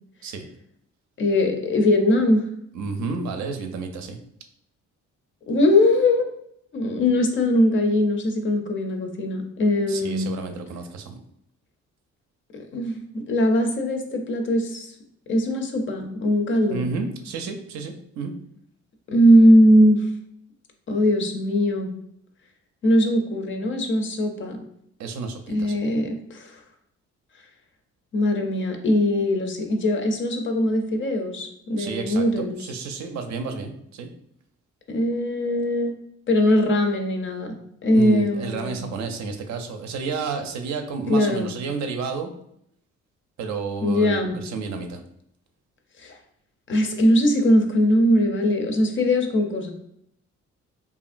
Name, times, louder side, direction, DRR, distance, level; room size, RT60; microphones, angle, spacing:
voice 1, 1.2-2.5 5.5-6.3 6.7-10.3 12.5-14.9 15.3-16.8 19.1-20.0 20.9-21.9 22.8-24.6 25.5-26.6 28.1-32.6 34.9-35.9 36.3-37.6 37.8-38.8 41.1-41.5 43.8-44.4 46.0-46.1 46.7-49.7, left 1 dB, 40° left, 4 dB, 0.5 m, -20 dB
voice 2, 2.7-4.2 9.9-11.2 16.7-18.3 25.0-25.8 31.8-34.1 37.9-42.3 43.4-45.0, right 4 dB, 65° right, 6 dB, 0.5 m, -31 dB
2.9 x 2.5 x 2.4 m, 0.73 s
cardioid pair, 90°, 30 cm